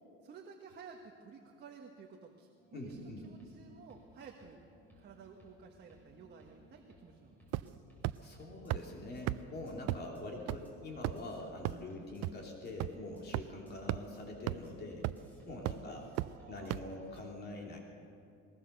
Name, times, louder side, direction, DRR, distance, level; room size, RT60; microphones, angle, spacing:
voice 1, 0.2-4.6 4.9-7.3 16.0-17.1, right 5 dB, 35° right, 2 dB, 1.4 m, -54 dB
sound 1, 2.6-17.2, left 1 dB, 5° left, 5.2 m, -62 dB
voice 2, 2.7-3.2 8.2-15.1 15.4-16.1 16.5-17.8, left 2 dB, 30° left, 0 dB, 2.9 m, -44 dB
sound 2, 7.5-7.8 8.0-8.1 8.7-8.8 9.3-9.4 9.9-10.0 10.5-10.6 11.0-11.3 11.6-11.7 12.2-12.3 12.8-12.9 13.3-13.4 13.9-14.0 14.5-14.6 15.0-15.3 15.7-15.8 16.2-16.3 16.7-16.8, right 18 dB, 55° right, 0.5 m, -33 dB
21.0 x 19.5 x 6.7 m, 2.5 s
cardioid pair, 160°, 31 cm